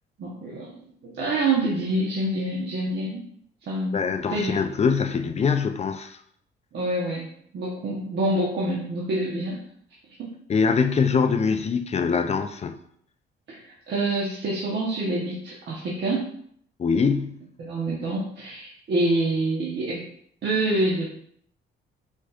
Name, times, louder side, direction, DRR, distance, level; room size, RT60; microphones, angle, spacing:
voice 1, 0.2-0.7 1.0-3.2 3.7-3.9 4.3-4.5 6.7-7.3 7.5-9.6 10.2-10.3 13.5-16.3 17.6-20.0 20.4-21.1, right 2 dB, 60° right, -4 dB, 1.1 m, -26 dB
voice 2, 3.9-6.2 10.5-12.7 16.8-17.4, left 5 dB, 35° left, 8 dB, 0.5 m, -23 dB
4.9 x 4.1 x 2.4 m, 0.66 s
cardioid pair, 90°, 20 cm